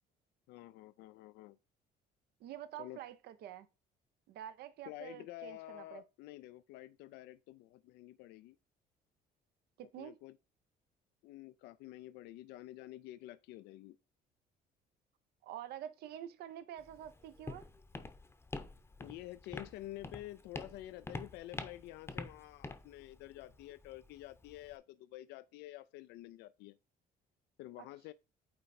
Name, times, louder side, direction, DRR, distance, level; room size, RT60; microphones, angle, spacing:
voice 1, 0.5-1.6 2.8-3.0 4.9-8.6 9.8-10.4 11.2-14.0 19.0-26.8 27.6-28.1, left 16 dB, 85° left, 0.4 m, -49 dB
voice 2, 2.4-3.7 4.3-6.0 9.8-10.2 15.4-17.7, right 11 dB, 70° right, 0.6 m, -47 dB
Walk footsteps, 16.8-24.8, left 2 dB, 15° left, 0.7 m, -47 dB
8.7 x 3.3 x 4.1 m
cardioid pair, 110°, 17 cm